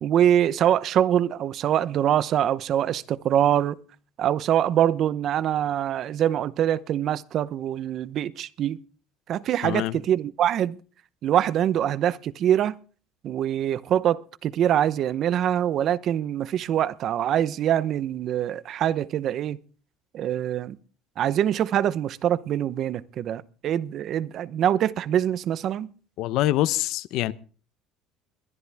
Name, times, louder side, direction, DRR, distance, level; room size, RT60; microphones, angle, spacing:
voice 1, 0.0-3.8 4.2-8.8 9.3-10.8 11.2-12.7 13.2-19.6 20.1-20.8 21.2-25.9, right 10 dB, 45° right, 0.8 m, -24 dB
voice 2, 9.6-10.0 26.2-27.3, left 15 dB, 65° left, 0.7 m, -25 dB
21.5 x 11.0 x 3.5 m
cardioid pair, 145°, 0 cm